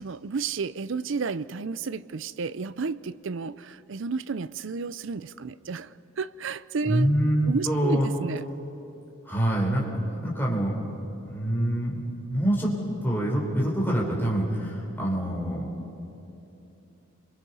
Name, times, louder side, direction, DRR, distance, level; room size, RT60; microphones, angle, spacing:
voice 1, 0.0-5.9 6.2-7.1 7.5-8.4, right 5 dB, 60° right, 17 dB, 0.5 m, -32 dB
voice 2, 6.9-8.1 9.3-10.8 11.2-12.0 12.3-12.7 13.0-15.6, right 1 dB, 10° left, -4 dB, 3.7 m, -25 dB
29.5 x 22.5 x 5.5 m, 2.9 s
head